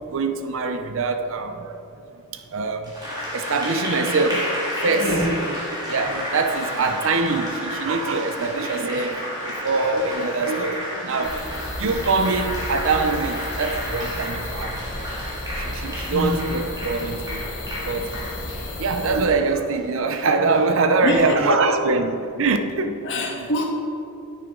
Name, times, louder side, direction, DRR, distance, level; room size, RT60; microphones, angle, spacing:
voice 1, 0.0-2.0 2.3-2.9 3.2-5.5 5.8-15.1 15.5-17.5 17.8-18.2 18.7-23.5, right 3 dB, 60° right, 7 dB, 0.7 m, -24 dB
Applause, 2.8-20.7, equal, 20° right, 2.2 m, -32 dB
voice 2, 5.0-5.3 16.1-16.5 21.0-21.6 23.0-23.7, left 1 dB, 55° left, -1 dB, 1.6 m, -25 dB
sound 1, 11.2-19.3, left 1 dB, 75° left, 1.8 m, -33 dB
9.6 x 9.1 x 3.8 m, 2.8 s
head